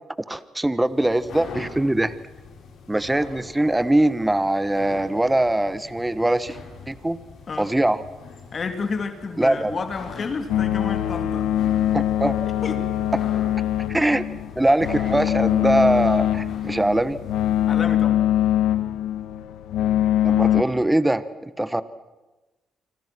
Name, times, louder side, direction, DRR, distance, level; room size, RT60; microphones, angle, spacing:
voice 1, 0.3-2.1 2.9-6.6 6.9-7.2 7.6-8.0 9.4-9.8 11.9-12.3 13.9-14.2 14.6-17.2 20.2-21.8, right 1 dB, 10° right, 14 dB, 1.2 m, -22 dB
sound 1, 0.7-17.9, left 5 dB, 70° left, 7.0 m, -43 dB
voice 2, 8.5-11.5 12.6-12.8 17.7-18.2, left 4 dB, 45° left, 7 dB, 3.0 m, -30 dB
sound 2, 10.5-20.6, left 11 dB, 90° left, 1.4 m, -23 dB
27.5 x 25.5 x 6.2 m, 1.1 s
cardioid pair, 90°, 0 cm